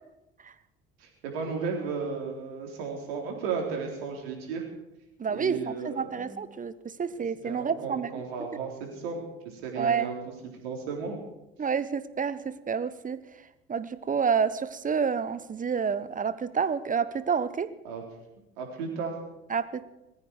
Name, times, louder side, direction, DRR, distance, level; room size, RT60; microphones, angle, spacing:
voice 1, 1.0-4.6 5.3-6.4 7.1-10.2 10.5-11.2 17.8-18.0 18.6-19.2, right 5 dB, 70° right, 1 dB, 4.0 m, -34 dB
voice 2, 5.2-6.7 7.0-8.1 9.7-10.1 11.6-13.2 13.7-17.7 19.5-19.9, right 6 dB, 25° right, 15 dB, 1.1 m, -29 dB
19.5 x 14.5 x 4.8 m, 0.93 s
figure-of-eight pair, 55°, 31 cm